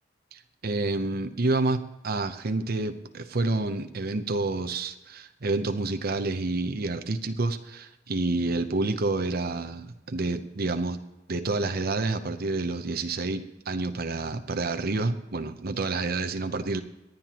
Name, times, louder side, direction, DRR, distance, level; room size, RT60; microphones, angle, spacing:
voice 1, 0.3-11.0 11.3-16.8, right 3 dB, 55° right, 8 dB, 0.7 m, -29 dB
25.5 x 9.2 x 2.9 m, 0.97 s
head